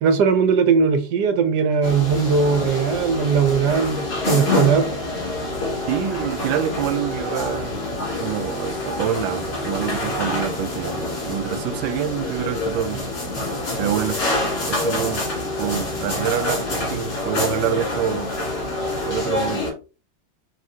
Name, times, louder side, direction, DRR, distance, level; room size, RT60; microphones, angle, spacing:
voice 1, 0.0-4.9, right 5 dB, 70° right, 1.1 m, -19 dB
sound 1, 1.8-19.7, left 2 dB, 65° left, 2.4 m, -26 dB
voice 2, 5.9-7.8 8.2-13.0 13.8-14.2 14.7-15.3 15.6-18.3 19.0-19.8, right 10 dB, 85° right, 1.4 m, -26 dB
5.6 x 2.7 x 2.7 m
omnidirectional pair, 2.1 m